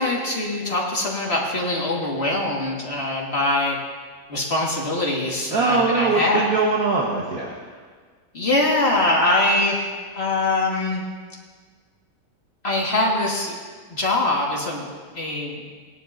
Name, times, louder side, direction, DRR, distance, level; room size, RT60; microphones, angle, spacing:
voice 1, 0.0-3.8 4.3-6.5 8.3-9.9 10.1-11.0 12.6-13.5 13.9-14.8 15.1-15.6, left 2 dB, 45° left, -3 dB, 2.0 m, -23 dB
voice 2, 5.5-7.6, right 3 dB, 65° right, -3 dB, 1.7 m, -21 dB
20.0 x 11.0 x 2.6 m, 1.5 s
omnidirectional pair, 1.6 m